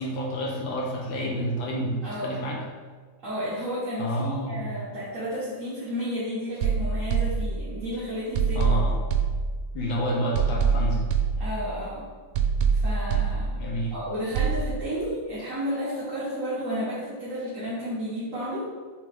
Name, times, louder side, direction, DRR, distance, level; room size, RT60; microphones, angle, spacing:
voice 1, 0.0-2.6 4.0-4.7 8.6-9.0 9.7-11.2 13.6-13.9, equal, 85° left, -1 dB, 1.9 m, -29 dB
voice 2, 2.0-2.5 3.2-8.8 11.4-12.0 12.7-13.6 13.9-18.6, equal, 45° right, -10 dB, 1.8 m, -32 dB
sound 1, 6.6-7.9 8.3-9.9 10.3-11.9 12.3-13.9 14.3-14.6, right 5 dB, 90° right, 1.4 m, -25 dB
7.1 x 3.8 x 3.6 m, 1.5 s
omnidirectional pair, 2.1 m